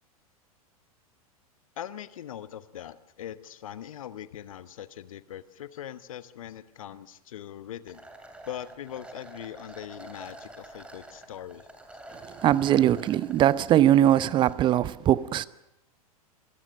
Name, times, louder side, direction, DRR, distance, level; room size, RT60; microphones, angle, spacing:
voice 1, 1.8-8.0 8.5-11.7, left 10 dB, 60° left, 1.2 m, -41 dB
sound 1, 7.9-14.5, right 1 dB, 5° right, 2.7 m, -47 dB
voice 2, 12.4-15.5, right 12 dB, 25° right, 0.6 m, -21 dB
26.0 x 16.5 x 6.5 m
figure-of-eight pair, 95°, 19 cm